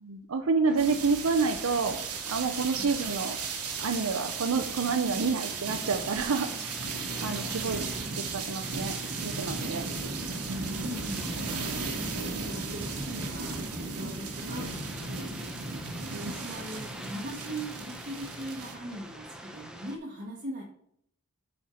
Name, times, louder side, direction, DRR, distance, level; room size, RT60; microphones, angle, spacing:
voice 1, 0.1-2.0 2.3-3.4 3.8-6.5 7.2-7.9 8.3-8.9 9.2-9.9 10.5-10.9 16.1-16.3, right 4 dB, 70° right, 7 dB, 0.6 m, -28 dB
sound 1, 0.6-20.0, equal, 5° right, 0.7 m, -45 dB
sound 2, 0.8-18.7, right 4 dB, 90° right, 1.4 m, -36 dB
voice 2, 10.7-11.5 11.8-15.5 16.2-20.6, right 1 dB, 35° right, -3 dB, 1.1 m, -41 dB
7.4 x 4.4 x 5.6 m, 0.70 s
head